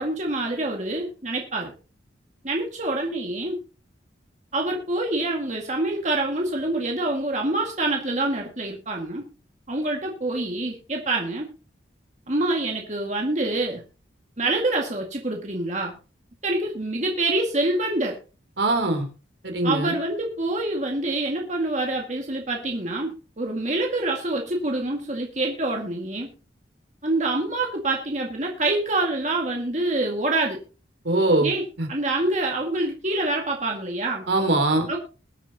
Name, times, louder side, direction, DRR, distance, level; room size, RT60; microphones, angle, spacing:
voice 1, 0.0-1.7 2.4-3.6 4.5-9.2 9.7-11.5 12.3-13.8 14.4-15.9 16.4-18.2 19.6-26.3 27.0-30.6 31.4-31.6 31.9-34.3 34.9-35.0, right 2 dB, 40° right, 0 dB, 2.0 m, -26 dB
voice 2, 18.6-19.1 19.4-19.9 31.0-31.5 31.8-31.9 34.3-34.9, right 2 dB, 70° right, 5 dB, 3.4 m, -21 dB
22.5 x 9.0 x 2.9 m, 0.34 s
head